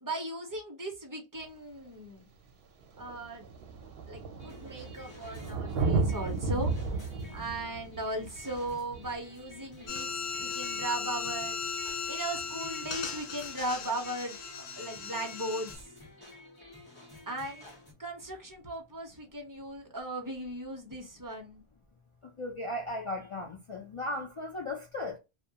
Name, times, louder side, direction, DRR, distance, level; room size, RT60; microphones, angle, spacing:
voice 1, 0.0-2.3 3.0-3.4 4.1-6.7 7.3-10.1 10.4-11.6 12.1-15.9 17.3-17.6 18.0-21.6, right 1 dB, 25° right, 0.5 m, -37 dB
Thunder, 1.4-1.5 2.5-2.6 2.8-10.1 11.8-11.9, right 3 dB, 65° right, 0.7 m, -34 dB
sound 1, 4.4-17.9, left 1 dB, 20° left, 1.0 m, -52 dB
sound 2, 9.9-15.8, left 5 dB, 80° left, 0.8 m, -37 dB
voice 2, 22.2-25.2, left 1 dB, 55° left, 0.3 m, -36 dB
2.2 x 2.1 x 2.7 m
omnidirectional pair, 1.1 m